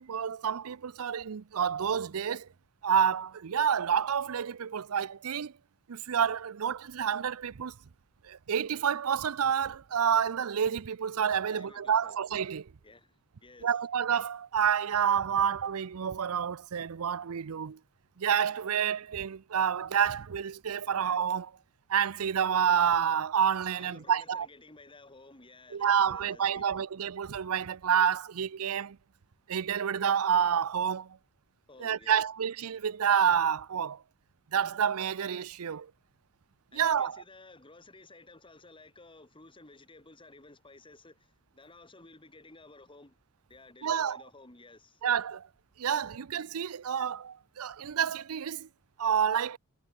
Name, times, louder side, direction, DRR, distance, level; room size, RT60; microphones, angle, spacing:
voice 1, 0.0-2.5 2.8-5.5 5.9-7.7 8.2-12.7 13.6-17.8 18.2-21.5 21.9-24.5 25.7-29.0 29.5-31.2 31.8-34.0 34.5-35.9 36.7-37.1 43.8-44.2 45.0-45.5 45.8-48.7 49.0-49.6, right 8 dB, 75° right, 0.5 m, -29 dB
voice 2, 11.4-12.2 12.8-13.8 23.8-26.9 31.7-32.2 36.7-43.2 43.5-45.0, left 2 dB, 25° left, 3.2 m, -54 dB
head